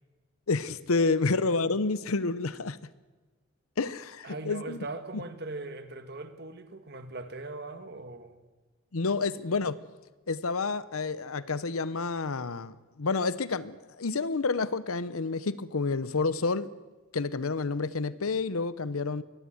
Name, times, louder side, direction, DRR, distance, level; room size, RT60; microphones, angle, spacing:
voice 1, 0.5-2.8 3.8-4.8 5.1-5.2 8.9-9.8 10.3-16.7 17.1-19.2, left 4 dB, 85° left, 0.8 m, -29 dB
voice 2, 4.2-8.4, right 2 dB, 50° right, 1.7 m, -40 dB
22.5 x 18.0 x 7.9 m
head